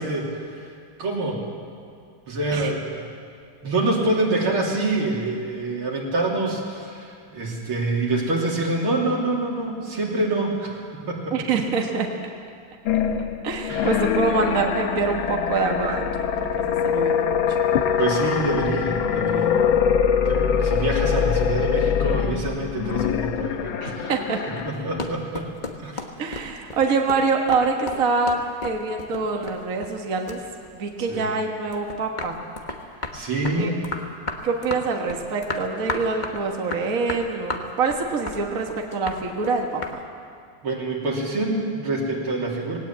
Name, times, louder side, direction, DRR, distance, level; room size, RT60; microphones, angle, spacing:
voice 1, 0.0-1.4 2.3-3.1 3.6-11.4 13.7-14.0 18.0-19.6 20.2-24.2 24.4-25.5 25.8-26.0 31.0-31.3 33.1-33.8 40.6-42.8, right 2 dB, 75° right, -2 dB, 3.9 m, -26 dB
voice 2, 11.3-12.1 13.4-16.1 16.6-17.4 23.8-24.4 26.2-30.4 30.7-32.4 33.6-33.7 34.4-40.0, right 4 dB, 45° right, 2 dB, 1.7 m, -25 dB
sound 1, 12.9-25.1, left 7 dB, 70° left, 1.7 m, -23 dB
sound 2, 24.7-30.0 30.3-31.3 31.7-40.0, left 3 dB, 25° left, 1.1 m, -33 dB
18.5 x 17.5 x 8.8 m, 2.3 s
omnidirectional pair, 2.4 m